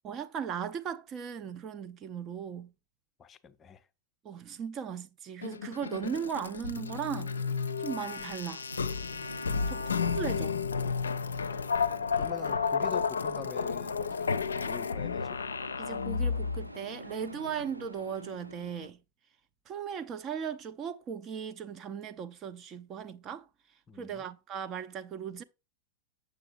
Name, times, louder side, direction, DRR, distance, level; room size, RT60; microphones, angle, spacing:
voice 1, 0.0-2.7 4.2-7.3 7.8-8.6 9.7-10.6 15.8-19.0 19.7-23.5 24.0-25.4, right 7 dB, 30° right, 0.6 m, -37 dB
voice 2, 3.2-3.8 9.5-9.9 11.8-15.4 23.9-24.3, left 7 dB, 25° left, 0.7 m, -45 dB
sound 1, 5.4-16.7, left 5 dB, 70° left, 0.5 m, -32 dB
sound 2, 6.8-18.9, right 1 dB, 90° right, 0.7 m, -48 dB
7.6 x 6.9 x 2.5 m
figure-of-eight pair, 90°, 0 cm